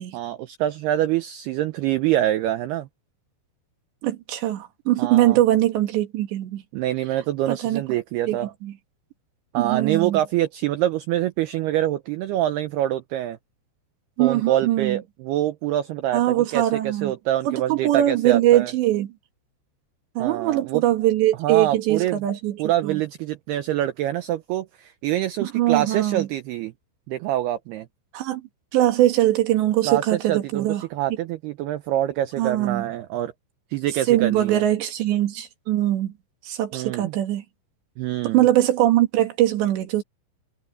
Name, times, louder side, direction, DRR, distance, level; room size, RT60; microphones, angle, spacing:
voice 1, 0.1-2.9 5.0-5.4 6.7-8.5 9.5-13.4 14.2-18.7 20.2-20.8 21.4-22.2 22.6-26.7 27.1-27.9 29.9-33.3 33.7-34.6 36.7-37.1 38.0-38.4, right 13 dB, 85° right, 2.3 m, -25 dB
voice 2, 4.0-6.6 7.5-7.8 8.3-8.7 9.6-10.2 14.2-15.0 16.1-17.1 17.5-19.1 20.2-22.6 22.8-23.0 25.4-26.3 28.1-28.4 28.7-30.8 32.4-32.9 34.1-36.1 36.4-37.4 38.3-40.0, right 13 dB, 65° right, 4.0 m, -21 dB
omnidirectional pair, 5.6 m